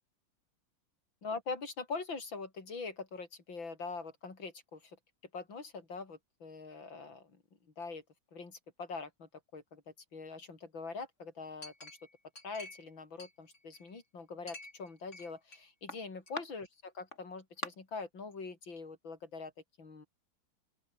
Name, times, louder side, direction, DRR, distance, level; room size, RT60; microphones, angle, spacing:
voice 1, 1.2-5.0 5.3-7.4 7.8-8.0 8.3-11.9 12.4-19.5 19.8-20.1, left 4 dB, 60° left, 5.0 m, -43 dB
Chink clink, 11.6-12.9 13.2-14.0 14.5-15.6 15.9-16.5 17.1-17.2 17.6-17.7, left 2 dB, 30° left, 5.7 m, -45 dB
open air
omnidirectional pair, 2.3 m